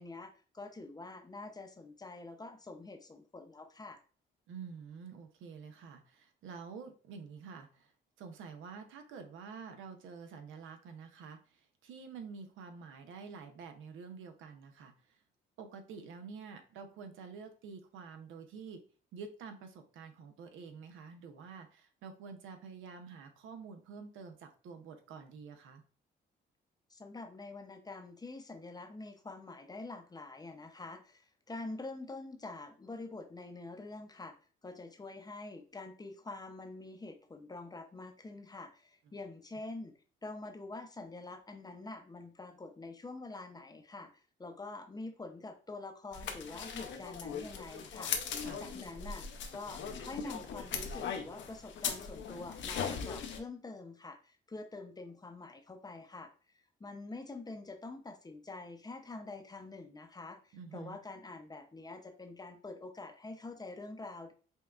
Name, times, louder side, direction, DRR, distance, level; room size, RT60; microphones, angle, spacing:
voice 1, 0.0-4.0 26.9-34.3 34.6-48.1 48.6-56.3 56.8-64.3, left 2 dB, 20° left, 6 dB, 0.6 m, -46 dB
voice 2, 4.5-7.9 8.2-15.2 15.6-18.8 19.1-25.8 39.1-39.2 48.4-48.6 60.5-61.0, right 5 dB, 85° right, 7 dB, 0.7 m, -48 dB
sound 1, 46.1-53.4, left 6 dB, 70° left, 0.7 m, -39 dB
5.4 x 2.3 x 2.3 m, 0.39 s
cardioid pair, 90°, 20 cm